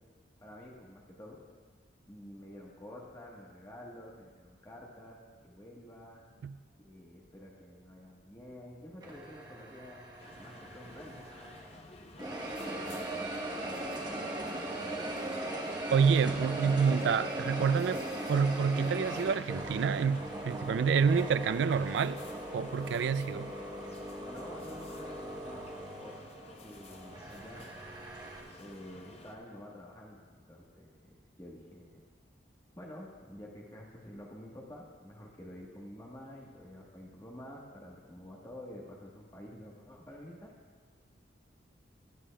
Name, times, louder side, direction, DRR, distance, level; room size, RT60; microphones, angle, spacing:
voice 1, 0.4-1.4 2.1-5.2 5.4-6.2 6.8-10.0 10.3-11.2 12.2-13.1 16.4-16.8 17.8-18.1 24.2-25.6 26.0-26.3 26.6-27.6 28.6-32.0 32.8-40.5, left 1 dB, 20° left, 1.3 m, -49 dB
sound 1, 9.0-11.8 12.2-28.4, right 1 dB, 20° right, 1.0 m, -39 dB
sound 2, 10.2-29.4, left 2 dB, 35° left, 0.7 m, -52 dB
voice 2, 15.9-18.0 18.3-22.2 22.5-23.5, right 6 dB, 75° right, 0.3 m, -28 dB
16.0 x 11.0 x 2.3 m
head